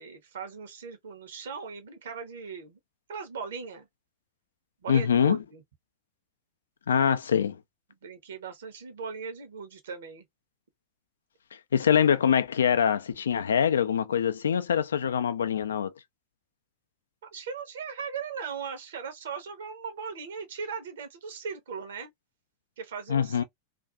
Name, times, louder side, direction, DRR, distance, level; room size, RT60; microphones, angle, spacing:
voice 1, 0.0-2.8 3.1-3.9 4.8-5.6 8.0-10.3 17.3-22.1 22.8-23.4, right 5 dB, 60° right, 0.8 m, -38 dB
voice 2, 4.9-5.4 6.9-7.6 11.7-15.9 23.1-23.4, left 8 dB, 70° left, 0.3 m, -24 dB
2.5 x 2.4 x 2.3 m
figure-of-eight pair, 90°, 0 cm